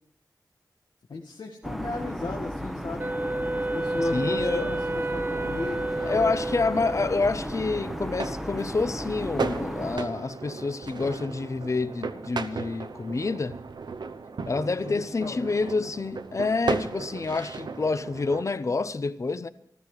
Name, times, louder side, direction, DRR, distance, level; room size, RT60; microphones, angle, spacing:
voice 1, 1.1-3.2 3.5-6.3 14.5-15.9, left 3 dB, 80° left, 1.7 m, -36 dB
sound 1, 1.6-10.0, equal, ahead, 0.9 m, -35 dB
Wind instrument woodwind instrument, 3.0-7.3, right 2 dB, 30° right, 0.5 m, -30 dB
voice 2, 4.1-4.7 6.1-13.6 14.5-19.5, left 3 dB, 45° left, 0.8 m, -28 dB
sound 2, 5.3-18.4, right 4 dB, 80° right, 0.9 m, -36 dB
14.5 x 13.5 x 4.9 m
wide cardioid pair, 95°, 7 cm